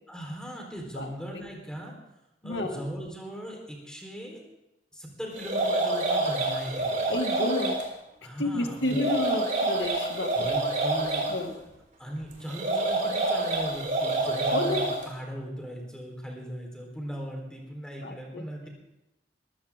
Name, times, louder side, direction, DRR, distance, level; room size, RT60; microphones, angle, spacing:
voice 1, 0.1-1.9 2.4-4.4 4.9-7.1 8.2-9.0 10.3-11.3 12.0-18.7, equal, 5° left, 0 dB, 3.9 m, -38 dB
voice 2, 2.4-2.8 7.1-7.8 8.4-10.6 11.3-11.5 14.5-14.9 18.0-18.4, left 2 dB, 80° left, 4 dB, 2.1 m, -30 dB
sound 1, 5.4-7.8 8.8-11.3 12.5-15.0, right 2 dB, 45° right, 3.9 m, -27 dB
21.5 x 15.0 x 3.7 m, 0.91 s
head